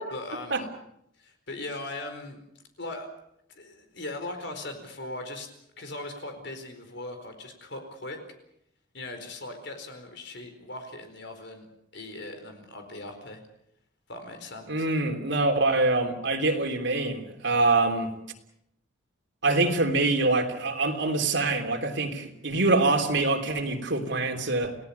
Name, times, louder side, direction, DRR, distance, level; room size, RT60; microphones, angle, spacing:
voice 1, 0.1-0.7 1.2-2.4 2.8-3.1 3.6-5.5 5.8-8.2 8.9-11.7 11.9-13.4 14.1-14.9, left 2 dB, 60° left, 6 dB, 4.5 m, -39 dB
voice 2, 14.7-18.1 19.4-24.8, right 2 dB, 60° right, 4 dB, 3.3 m, -25 dB
29.5 x 18.0 x 7.1 m, 0.76 s
head